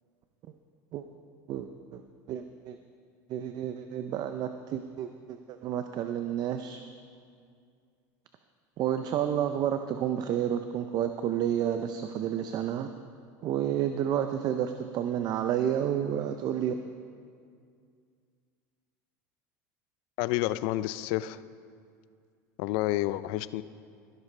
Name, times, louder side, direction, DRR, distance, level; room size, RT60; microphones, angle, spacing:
voice 1, 2.3-2.8 3.3-6.8 8.8-12.9 13.4-16.7, right 10 dB, 50° right, 8 dB, 0.6 m, -30 dB
voice 2, 20.2-21.4 22.6-23.6, left 16 dB, 65° left, 16 dB, 0.4 m, -29 dB
15.0 x 12.0 x 3.3 m, 2.2 s
supercardioid pair, 100°, 9 cm